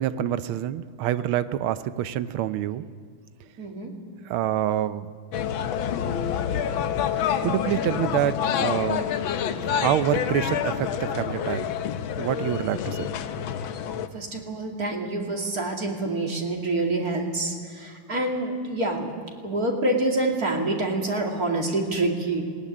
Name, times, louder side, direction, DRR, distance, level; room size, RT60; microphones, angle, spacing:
voice 1, 0.0-2.8 4.3-5.1 7.4-9.1 9.7-11.7 12.2-13.1, right 11 dB, 85° right, 13 dB, 1.6 m, -26 dB
voice 2, 3.6-3.9 14.1-19.1 19.4-22.4, right 2 dB, 45° right, 1 dB, 2.8 m, -27 dB
sound 1, 5.3-14.1, left 8 dB, 75° left, 1.7 m, -27 dB
19.0 x 18.5 x 10.0 m, 2.1 s
omnidirectional pair, 2.3 m